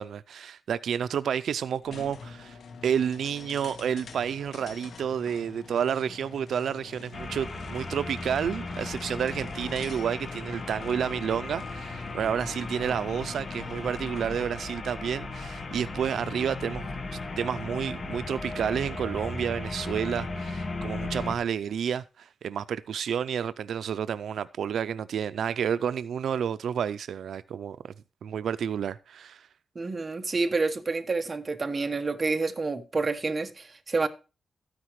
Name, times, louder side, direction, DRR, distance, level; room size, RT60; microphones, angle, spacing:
voice 1, 0.0-16.9 17.1-27.8 28.2-29.5, right 8 dB, 85° right, 0.4 m, -30 dB
sound 1, 1.8-14.6, left 5 dB, 65° left, 1.4 m, -44 dB
sound 2, 7.1-21.4, left 2 dB, 35° left, 1.4 m, -36 dB
voice 2, 29.7-34.1, right 3 dB, 25° right, 1.2 m, -28 dB
13.0 x 9.6 x 3.1 m
wide cardioid pair, 175°, 0 cm